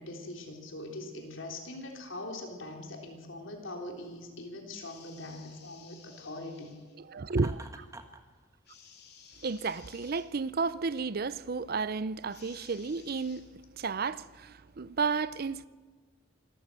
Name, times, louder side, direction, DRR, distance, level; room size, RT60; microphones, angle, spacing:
voice 1, 0.0-6.8, left 2 dB, 75° left, 3.4 m, -42 dB
sound 1, 4.7-7.0 8.7-10.3 12.3-13.4, left 6 dB, 55° left, 3.4 m, -56 dB
voice 2, 7.1-7.8 9.4-13.4 13.8-15.7, right 4 dB, 50° right, 0.5 m, -32 dB
Laughter, 7.3-8.2, right 2 dB, 15° right, 1.3 m, -46 dB
25.0 x 13.5 x 7.7 m
head